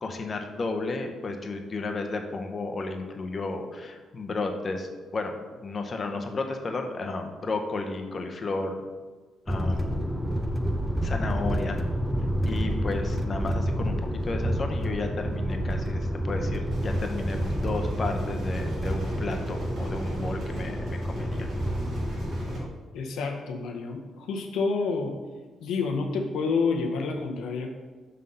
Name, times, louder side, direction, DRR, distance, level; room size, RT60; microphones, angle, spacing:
voice 1, 0.0-5.3 5.6-8.8 9.5-10.0 11.0-11.8 12.5-13.9 14.2-21.5, left 3 dB, 40° left, 4 dB, 0.8 m, -33 dB
sound 1, 9.5-22.7, equal, 5° right, 0.6 m, -29 dB
sound 2, 16.7-22.6, right 1 dB, 65° right, 1.9 m, -44 dB
voice 2, 22.9-25.2 25.6-27.7, left 4 dB, 80° left, 2 dB, 0.7 m, -28 dB
5.5 x 3.8 x 5.4 m, 1.3 s
cardioid pair, 90°, 0 cm